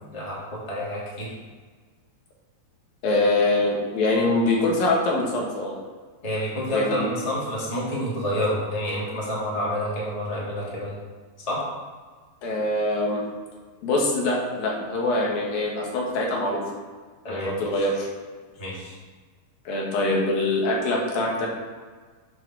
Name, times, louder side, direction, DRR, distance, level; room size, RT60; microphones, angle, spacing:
voice 1, 0.1-1.3 6.2-11.0 11.5-11.6 17.2-17.7 18.6-18.9, equal, 10° left, -7 dB, 2.3 m, -28 dB
voice 2, 3.0-5.7 6.7-7.1 12.4-13.2 13.8-16.6 17.3-18.1 19.7-21.5, left 2 dB, 80° left, -2 dB, 3.5 m, -24 dB
7.7 x 6.3 x 6.1 m, 1.5 s
omnidirectional pair, 4.0 m